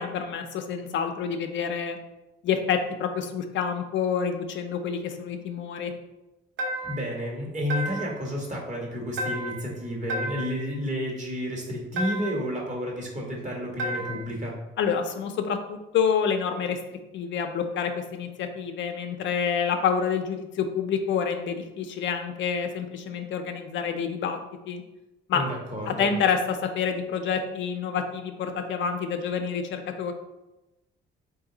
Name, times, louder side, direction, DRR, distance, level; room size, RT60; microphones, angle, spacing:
voice 1, 0.0-2.0 2.4-5.9 14.8-24.4 24.7-24.8 25.3-25.4 25.9-30.1, left 6 dB, 70° left, 6 dB, 0.5 m, -28 dB
sound 1, 6.6-7.1 7.7-8.2 9.2-9.7 10.1-10.6 12.0-12.5 13.8-14.3, right 1 dB, 70° right, 0.7 m, -32 dB
voice 2, 6.8-14.6 25.3-26.1, equal, 35° right, -1 dB, 1.3 m, -31 dB
3.8 x 2.6 x 3.8 m, 0.97 s
cardioid pair, 90°, 20 cm